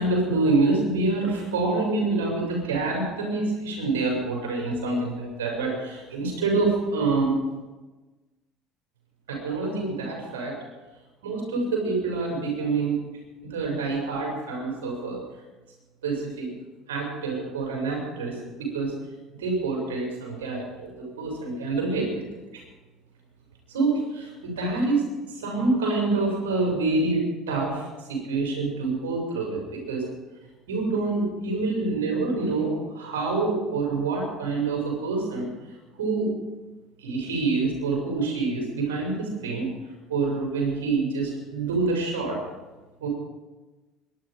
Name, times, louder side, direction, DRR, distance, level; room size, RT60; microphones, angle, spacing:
voice 1, 0.0-7.4 9.3-10.5 11.2-13.0 13.4-15.2 16.0-16.5 16.9-18.9 19.4-20.9 21.2-22.2 23.7-30.0 30.7-35.5 36.0-36.3 37.0-39.7 40.1-42.4 43.0-43.1, right 3 dB, 90° right, 0 dB, 6.8 m, -26 dB
22.5 x 11.5 x 5.2 m, 1.2 s
hypercardioid pair, 75°, 0 cm